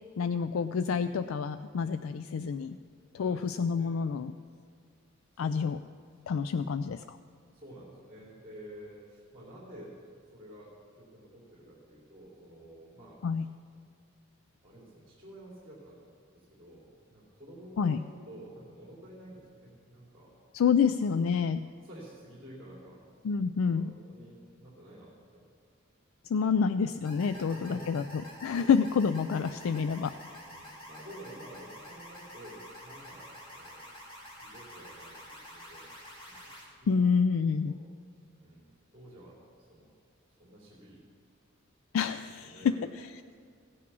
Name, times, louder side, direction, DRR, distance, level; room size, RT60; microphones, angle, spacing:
voice 1, 0.2-2.8 3.2-4.3 5.4-5.8 6.3-7.2 13.2-13.4 17.8-18.0 20.5-21.6 23.2-23.9 26.2-28.0 28.4-30.4 36.9-37.7 41.9-43.1, left 6 dB, 80° left, 11 dB, 0.4 m, -28 dB
voice 2, 3.1-3.9 4.3-4.4 5.3-5.8 6.7-6.8 7.5-9.9 10.3-13.5 14.6-16.0 16.3-20.3 21.0-21.1 21.8-23.0 23.6-25.4 26.3-26.8 27.2-28.0 28.6-28.7 30.3-33.9 34.4-35.9 36.2-36.5 36.8-37.1 37.6-37.8 38.4-39.9 40.3-41.0 41.9-42.0 42.4-42.9 43.2-43.3, right 1 dB, 30° right, -6 dB, 2.9 m, -51 dB
sound 1, 27.0-36.6, equal, 25° left, 2.9 m, -48 dB
16.0 x 8.5 x 6.1 m, 2.2 s
head